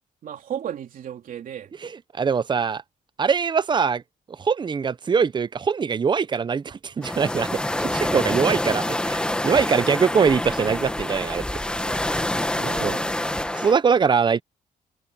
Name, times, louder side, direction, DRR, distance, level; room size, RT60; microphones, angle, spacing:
voice 1, 0.2-1.7 11.8-12.0 12.5-13.1, right 10 dB, 70° right, 3.3 m, -35 dB
voice 2, 1.8-2.8 3.2-4.0 4.4-11.4 12.6-12.9 13.5-14.4, right 6 dB, 30° right, 0.7 m, -22 dB
sound 1, 7.0-13.7, left 1 dB, 5° left, 1.5 m, -26 dB
cardioid pair, 125°, 15 cm